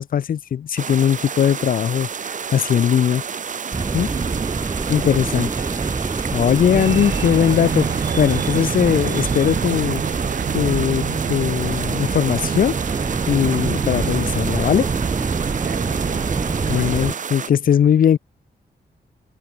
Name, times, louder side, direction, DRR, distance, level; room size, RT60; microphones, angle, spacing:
voice 1, 0.0-3.2 3.9-4.1 4.9-5.5 6.3-10.0 10.5-12.8 13.3-14.9 16.7-18.2, left 9 dB, 55° left, 0.4 m, -19 dB
sound 1, 0.8-17.5, right 6 dB, 45° right, 0.7 m, -30 dB
sound 2, 3.7-17.1, right 4 dB, 20° right, 0.3 m, -26 dB
voice 2, 4.1-6.0 15.6-16.4, right 8 dB, 90° right, 2.9 m, -37 dB
sound 3, 6.7-17.0, right 7 dB, 65° right, 1.5 m, -28 dB
wide cardioid pair, 120°, 18 cm